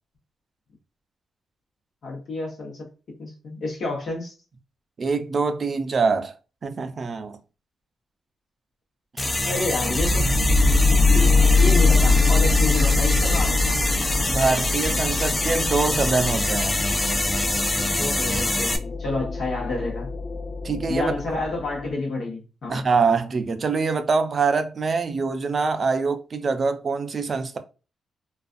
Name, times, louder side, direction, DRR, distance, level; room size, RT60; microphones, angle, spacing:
voice 1, 2.0-2.8 3.2-4.3 9.4-10.4 10.8-13.8 18.0-20.1 20.9-22.8, left 2 dB, 65° left, 0.9 m, -29 dB
voice 2, 5.0-6.3 6.6-7.4 9.2-9.4 11.1-11.7 14.3-16.8 20.6-21.1 22.7-27.6, right 4 dB, 50° right, 0.4 m, -24 dB
sound 1, 9.2-18.8, left 1 dB, 20° left, 0.4 m, -25 dB
sound 2, 10.0-21.9, left 3 dB, 40° left, 0.8 m, -23 dB
2.4 x 2.3 x 2.4 m
cardioid pair, 75°, 0 cm